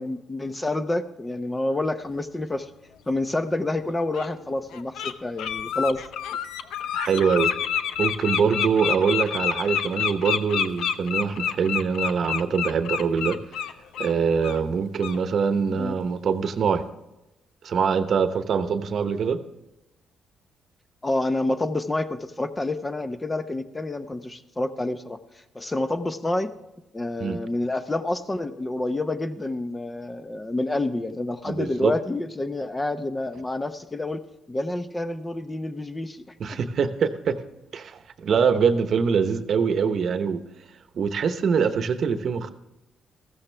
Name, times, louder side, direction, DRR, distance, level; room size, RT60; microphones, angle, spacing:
voice 1, 0.0-2.7 3.1-6.0 15.7-16.0 21.0-25.2 25.5-26.5 26.9-34.2 34.5-36.6, left 2 dB, 20° left, 10 dB, 0.8 m, -28 dB
Bird, 3.3-3.4 4.1-4.3 4.7-5.1 5.4-14.1 14.4-14.6 15.0-15.2, left 8 dB, 80° left, 0.7 m, -28 dB
voice 2, 6.9-7.5 8.0-13.4 14.0-16.8 17.6-19.4 27.2-27.4 31.5-31.9 36.4-37.4 37.7-40.4 40.9-42.5, right 6 dB, 55° right, 10 dB, 1.0 m, -24 dB
14.5 x 13.5 x 3.4 m, 1.0 s
cardioid pair, 90°, 0 cm